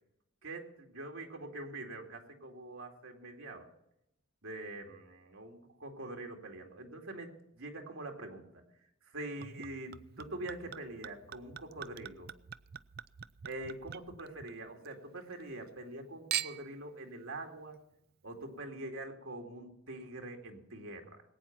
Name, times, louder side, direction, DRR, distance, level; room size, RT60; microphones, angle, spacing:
voice 1, 0.4-3.7 4.4-8.6 9.0-12.3 13.4-17.8 18.2-21.2, right 2 dB, 80° right, 2 dB, 2.5 m, -44 dB
Chink clink / Liquid, 9.4-14.9 15.3-15.9 16.3-16.8 17.6-17.7, right 11 dB, 45° right, 0.4 m, -43 dB
19.5 x 9.2 x 5.9 m, 0.82 s
head